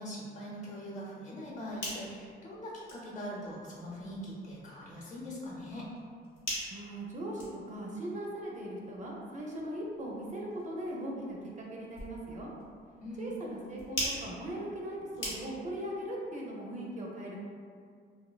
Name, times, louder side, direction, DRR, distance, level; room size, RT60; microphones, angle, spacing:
voice 1, 0.0-5.9 13.0-13.3, equal, 35° left, -5 dB, 0.7 m, -42 dB
sound 1, 1.4-15.8, left 1 dB, 85° left, 0.9 m, -44 dB
voice 2, 6.7-12.5 13.2-17.4, right 1 dB, 40° right, -3 dB, 0.4 m, -39 dB
2.5 x 2.1 x 2.3 m, 2.1 s
cardioid pair, 90°, 20 cm